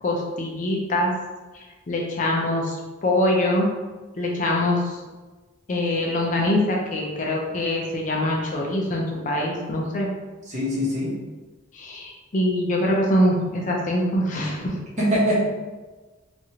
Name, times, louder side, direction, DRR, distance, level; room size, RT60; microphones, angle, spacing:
voice 1, 0.0-1.1 1.9-3.7 4.2-4.9 5.7-10.1 11.7-14.8, left 1 dB, 40° left, -2 dB, 0.4 m, -23 dB
voice 2, 10.5-11.2 15.0-15.4, equal, 35° right, -6 dB, 0.9 m, -22 dB
3.0 x 2.4 x 2.7 m, 1.2 s
head